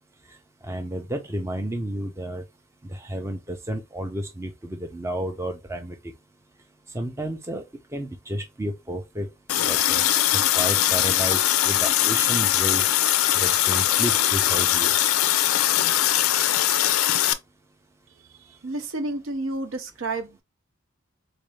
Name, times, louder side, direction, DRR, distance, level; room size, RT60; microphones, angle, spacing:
voice 1, 0.6-2.4 2.8-6.0 6.9-7.6 7.9-9.3 9.6-10.0 10.3-12.8 13.4-14.9, right 1 dB, 10° right, 0.5 m, -31 dB
Water tap faucet, 9.5-17.3, left 12 dB, 70° left, 0.4 m, -21 dB
voice 2, 18.6-20.4, right 2 dB, 60° right, 0.6 m, -30 dB
3.7 x 2.6 x 3.2 m
head